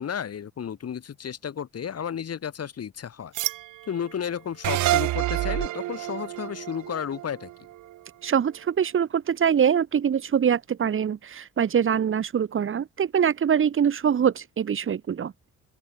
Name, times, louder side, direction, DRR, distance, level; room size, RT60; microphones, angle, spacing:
voice 1, 0.0-3.3 3.9-7.5, left 8 dB, 55° left, 5.9 m, -33 dB
sound 1, 3.3-8.9, right 15 dB, 85° right, 2.6 m, -40 dB
sound 2, 4.6-7.9, right 15 dB, 70° right, 0.6 m, -27 dB
voice 2, 8.2-15.5, right 8 dB, 45° right, 1.4 m, -24 dB
open air
cardioid pair, 90°, 30 cm